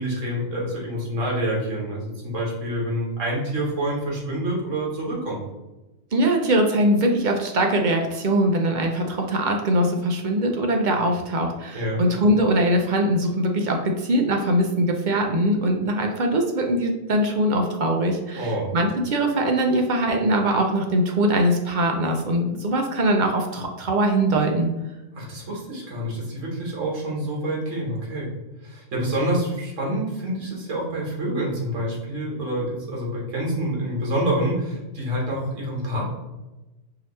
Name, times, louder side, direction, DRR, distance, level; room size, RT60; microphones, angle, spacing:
voice 1, 0.0-5.4 11.7-12.0 18.3-18.7 25.1-28.3 28.6-36.1, right 1 dB, 75° right, -4 dB, 1.6 m, -27 dB
voice 2, 6.1-24.7, right 1 dB, 55° right, 2 dB, 0.5 m, -22 dB
4.8 x 2.8 x 3.1 m, 1.0 s
omnidirectional pair, 1.3 m